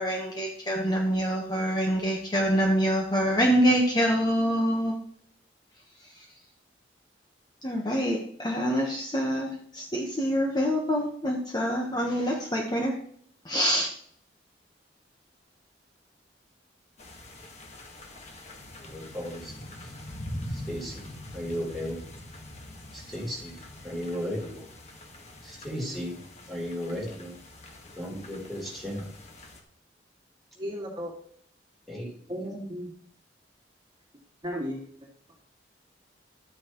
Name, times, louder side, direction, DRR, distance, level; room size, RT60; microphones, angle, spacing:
voice 1, 0.0-4.9 7.6-13.0 13.4-13.9, equal, 25° left, 0 dB, 1.2 m, -26 dB
sound 1, 17.0-29.6, left 1 dB, 40° left, 1.6 m, -43 dB
voice 2, 18.8-19.9 20.5-21.1 21.3-22.1 22.9-23.6 23.8-24.7 25.4-26.2 26.5-27.4 27.9-29.1 31.9-32.1, equal, ahead, -3 dB, 3.5 m, -35 dB
voice 3, 30.6-31.2 32.3-32.9 34.4-35.4, equal, 25° right, -2 dB, 2.2 m, -35 dB
12.5 x 9.3 x 3.1 m, 0.62 s
head